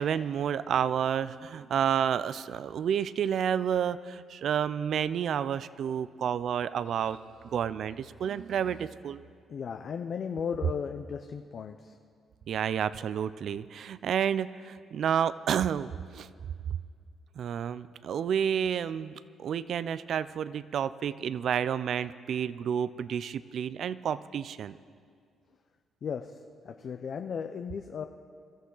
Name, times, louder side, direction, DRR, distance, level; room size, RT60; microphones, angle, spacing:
voice 1, 0.0-7.2 7.5-9.2 12.5-16.3 17.4-24.8, right 8 dB, 65° right, 16 dB, 0.4 m, -30 dB
voice 2, 9.5-12.0 26.0-28.1, left 6 dB, 55° left, 6 dB, 0.6 m, -36 dB
22.0 x 13.5 x 3.9 m, 2.1 s
cardioid pair, 90°, 0 cm